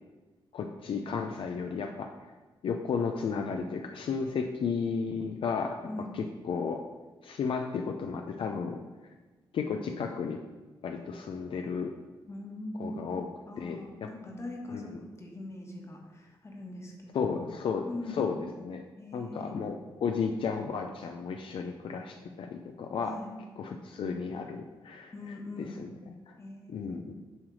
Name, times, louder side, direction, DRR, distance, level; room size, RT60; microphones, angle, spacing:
voice 1, 0.5-2.1 2.6-5.8 6.1-6.8 7.2-8.8 9.5-10.4 10.8-11.9 12.8-13.3 13.6-14.1 14.7-15.0 17.1-18.8 19.1-19.8 20.0-23.2 23.6-25.1 25.6-25.9 26.7-27.1, left 5 dB, 70° left, 4 dB, 0.5 m, -33 dB
voice 2, 5.8-6.1 12.3-13.0 13.5-17.6 17.9-18.3 19.0-19.6 23.0-23.3 25.1-25.9 26.4-27.1, left 2 dB, 30° left, 1 dB, 1.4 m, -42 dB
7.2 x 3.2 x 6.2 m, 1.3 s
cardioid pair, 105°, 9 cm